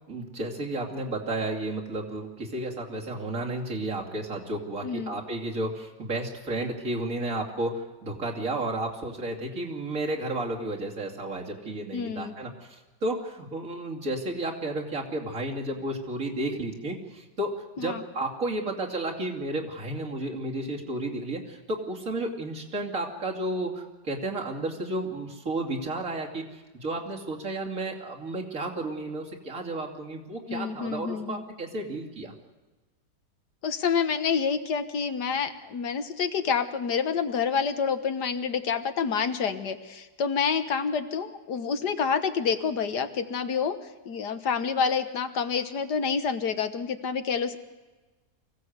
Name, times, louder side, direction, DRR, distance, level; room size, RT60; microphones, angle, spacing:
voice 1, 0.1-32.3, right 2 dB, 50° right, -1 dB, 3.2 m, -32 dB
voice 2, 4.8-5.2 11.9-12.3 17.8-18.0 30.5-31.4 33.6-43.8 44.0-47.6, left 6 dB, 75° left, 9 dB, 1.8 m, -28 dB
24.5 x 17.0 x 8.1 m, 1.2 s
omnidirectional pair, 1.8 m